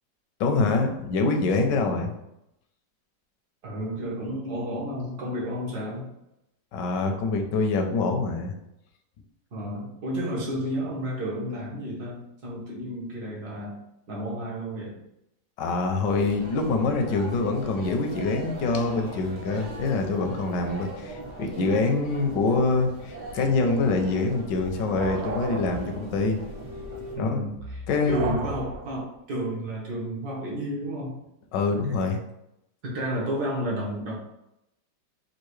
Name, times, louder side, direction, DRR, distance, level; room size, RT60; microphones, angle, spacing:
voice 1, 0.4-2.1 6.7-8.5 15.6-26.4 27.2-27.5 27.9-28.4 31.5-32.2, left 3 dB, 75° left, 4 dB, 1.3 m, -25 dB
voice 2, 3.6-6.1 9.5-13.8 14.1-15.0 27.1-31.2 32.8-34.1, equal, 60° right, -4 dB, 1.8 m, -32 dB
sound 1, 16.0-27.2, right 1 dB, 35° right, 0.7 m, -40 dB
sound 2, 23.4-29.1, right 3 dB, 80° right, 1.2 m, -36 dB
5.6 x 2.4 x 3.1 m, 0.84 s
omnidirectional pair, 2.0 m